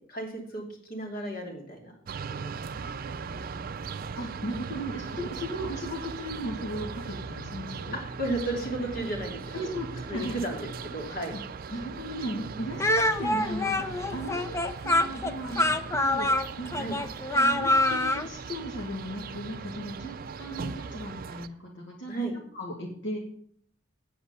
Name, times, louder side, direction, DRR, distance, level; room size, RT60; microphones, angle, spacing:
voice 1, 0.1-0.6 0.9-1.9 2.3-2.5 7.9-9.7 10.1-11.3 16.8-17.0 22.1-22.3, right 1 dB, 50° left, 1 dB, 2.8 m, -33 dB
sound 1, 2.1-21.5, right 5 dB, 45° right, 0.4 m, -39 dB
voice 2, 2.5-3.8 4.2-8.0 9.5-10.4 11.3-11.4 11.7-14.6 14.8-16.7 17.0-17.1 17.3-23.2, equal, 65° left, -2 dB, 2.0 m, -37 dB
Speech, 12.8-18.3, left 1 dB, 15° left, 0.5 m, -25 dB
8.8 x 8.2 x 6.9 m, 0.63 s
head